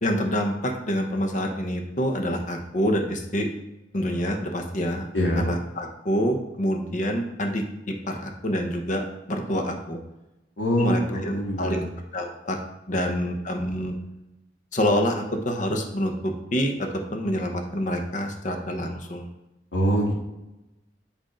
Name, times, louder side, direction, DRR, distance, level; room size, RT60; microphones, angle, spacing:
voice 1, 0.0-3.5 3.9-5.1 5.4-10.0 10.8-11.9 12.1-12.6 12.9-13.9 14.7-19.3, equal, 45° left, 3 dB, 0.8 m, -27 dB
voice 2, 5.1-5.5 10.6-11.8 13.1-13.3 19.7-20.1, equal, 75° left, -2 dB, 1.2 m, -24 dB
7.7 x 2.7 x 4.9 m, 0.97 s
head